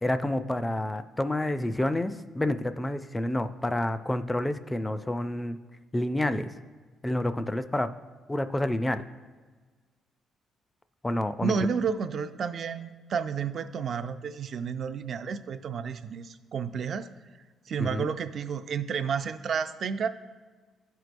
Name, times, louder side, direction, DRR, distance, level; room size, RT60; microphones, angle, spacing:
voice 1, 0.0-5.6 5.9-6.5 7.0-7.9 8.3-9.1 11.0-11.5 17.8-18.1, left 1 dB, 15° left, 11 dB, 0.3 m, -29 dB
voice 2, 11.4-17.1 17.7-20.1, right 6 dB, 55° right, 10 dB, 0.4 m, -31 dB
12.0 x 4.6 x 2.5 m, 1.4 s
cardioid pair, 90°, 0 cm